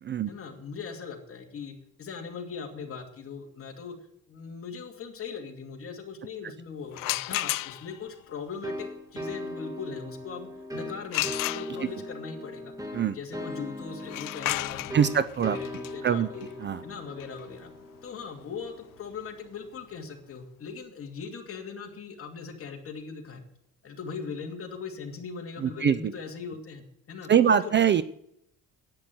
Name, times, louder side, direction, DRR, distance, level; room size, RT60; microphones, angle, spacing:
voice 1, 0.3-3.9 4.3-12.7 13.1-16.5 16.8-17.7 18.0-23.4 23.8-27.8, left 5 dB, 40° left, 2 dB, 2.5 m, -40 dB
sound 1, 6.9-8.1 11.1-12.1 14.0-19.7, left 18 dB, 75° left, 0.5 m, -34 dB
sound 2, 8.6-19.1, left 1 dB, 10° right, 1.6 m, -39 dB
voice 2, 14.9-15.6 16.0-16.3 16.6-16.8 25.6-26.1 27.3-28.0, right 8 dB, 35° right, 15 dB, 0.4 m, -23 dB
10.5 x 8.8 x 7.7 m, 0.77 s
cardioid pair, 135°, 33 cm